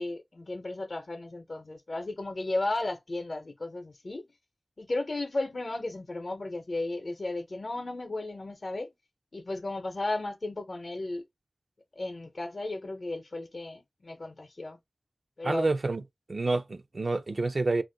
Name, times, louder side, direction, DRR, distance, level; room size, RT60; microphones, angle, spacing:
voice 1, 0.0-4.3 4.8-8.9 9.3-11.2 12.0-14.8 15.4-15.7, left 2 dB, 60° left, 0.7 m, -34 dB
voice 2, 15.4-16.0 16.3-17.8, right 3 dB, 65° right, 0.4 m, -28 dB
2.4 x 2.1 x 3.8 m
wide cardioid pair, 60°, 0 cm